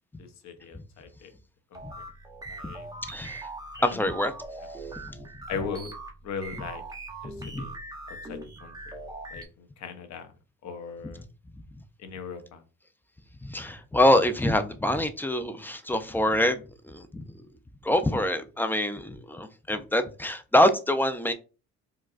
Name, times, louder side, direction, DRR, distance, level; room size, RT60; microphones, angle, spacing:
voice 1, 0.2-1.3 1.7-1.8 2.5-2.9 3.8-3.9 4.6-4.7 5.5-5.9 6.2-6.8 7.2-7.7 8.1-8.8 9.3-10.3 10.6-11.2 12.0-12.6, left 5 dB, 65° left, 0.8 m, -38 dB
sound 1, 1.7-9.4, right 2 dB, 15° right, 0.8 m, -41 dB
voice 2, 3.0-3.5 3.8-4.3 4.9-5.3 7.4-7.7 13.4-17.2 17.8-21.3, left 1 dB, 5° left, 0.4 m, -25 dB
4.6 x 2.2 x 2.4 m
cardioid pair, 90°, 30 cm